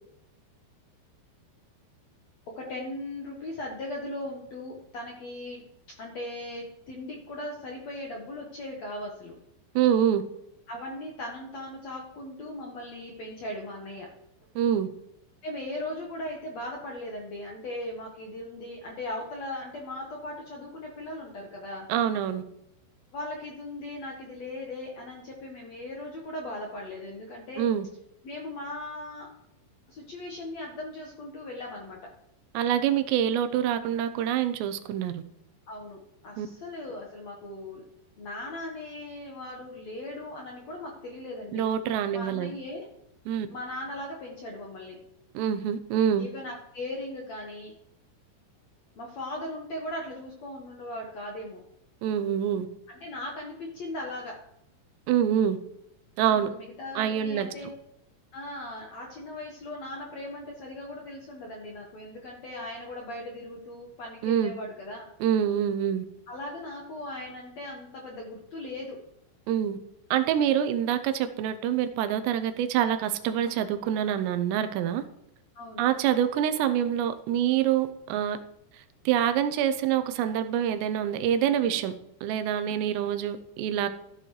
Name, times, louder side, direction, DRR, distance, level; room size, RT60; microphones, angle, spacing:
voice 1, 2.5-5.6 6.0-9.4 10.7-14.1 15.4-21.9 23.1-27.6 28.2-29.3 29.9-32.1 35.7-37.8 38.2-41.6 42.1-42.9 43.5-45.0 46.2-47.7 49.0-51.6 52.9-54.4 56.3-57.7 58.3-65.1 66.3-69.0 75.5-75.9 82.7-82.9, left 1 dB, 65° left, -1 dB, 1.8 m, -38 dB
voice 2, 9.8-10.2 14.6-14.9 21.9-22.4 27.6-27.9 32.5-35.2 36.4-36.5 41.5-42.5 43.3-43.5 45.3-46.3 52.0-52.7 55.1-55.6 56.2-56.5 57.0-57.5 64.2-64.5 65.2-66.1 69.5-69.8 70.1-75.0 75.8-78.4 78.7-81.9 82.2-83.9, right 9 dB, 80° right, 11 dB, 2.8 m, -26 dB
14.5 x 10.0 x 3.2 m, 0.78 s
omnidirectional pair, 5.0 m